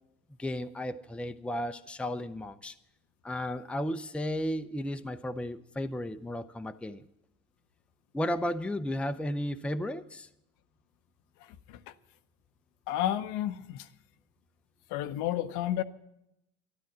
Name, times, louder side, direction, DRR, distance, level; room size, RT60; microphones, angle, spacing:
voice 1, 0.4-2.7 3.2-7.0 8.1-10.3, left 1 dB, 5° left, 0.6 m, -34 dB
voice 2, 12.9-13.9 14.9-15.8, left 12 dB, 65° left, 0.7 m, -31 dB
12.5 x 11.5 x 7.2 m
hypercardioid pair, 60°, 33 cm